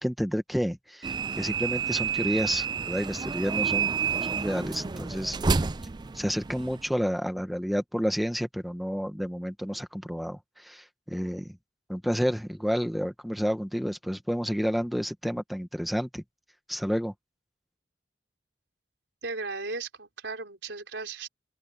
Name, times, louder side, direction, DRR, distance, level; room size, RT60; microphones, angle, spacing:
voice 1, 0.0-5.4 6.1-11.5 11.9-16.2 16.7-17.1, equal, ahead, 1.2 m, -30 dB
sound 1, 1.0-6.9, right 5 dB, 25° right, 0.4 m, -30 dB
voice 2, 19.2-21.3, right 3 dB, 80° right, 4.2 m, -36 dB
open air
head